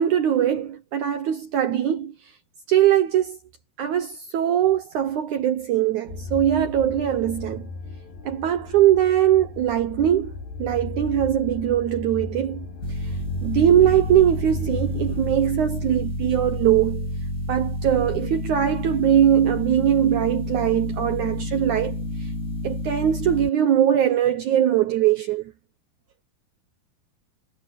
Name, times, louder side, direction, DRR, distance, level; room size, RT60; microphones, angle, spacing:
voice 1, 0.0-2.1 2.7-3.4 3.8-7.7 8.3-12.7 13.0-13.1 13.4-17.1 17.5-22.3 22.6-25.5, right 10 dB, 75° right, 1.8 m, -21 dB
sound 1, 6.1-15.4, left 3 dB, 60° left, 6.8 m, -35 dB
sound 2, 12.8-23.5, left 1 dB, 20° left, 4.4 m, -30 dB
omnidirectional pair, 4.8 m